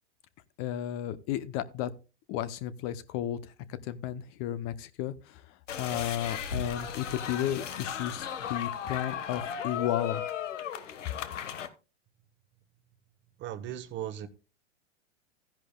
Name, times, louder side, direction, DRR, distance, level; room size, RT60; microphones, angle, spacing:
voice 1, 0.6-1.9 2.3-3.5 3.8-5.4 5.8-10.2, left 11 dB, 35° left, 0.7 m, -33 dB
sound 1, 5.7-11.7, left 8 dB, 80° left, 1.4 m, -36 dB
voice 2, 13.4-14.3, right 11 dB, 30° right, 1.1 m, -37 dB
14.5 x 10.5 x 2.2 m
hypercardioid pair, 120°, 36 cm